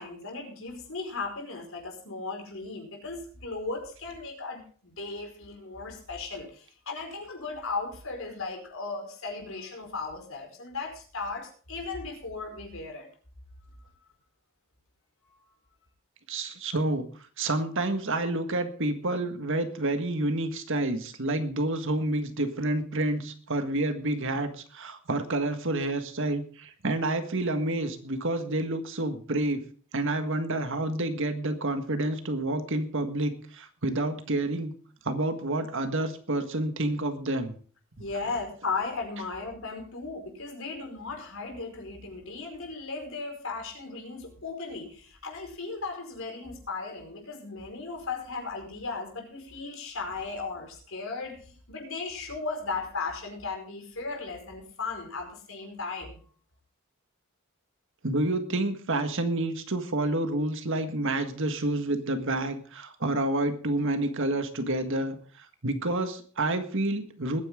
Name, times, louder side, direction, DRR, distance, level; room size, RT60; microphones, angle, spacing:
voice 1, 0.0-13.1 15.2-15.6 38.0-56.2, left 4 dB, 65° left, 2 dB, 5.0 m, -36 dB
voice 2, 16.3-17.0 17.4-29.6 29.9-34.7 35.0-37.5 58.0-67.4, right 2 dB, 60° right, 8 dB, 1.7 m, -29 dB
21.0 x 9.8 x 3.8 m, 0.42 s
head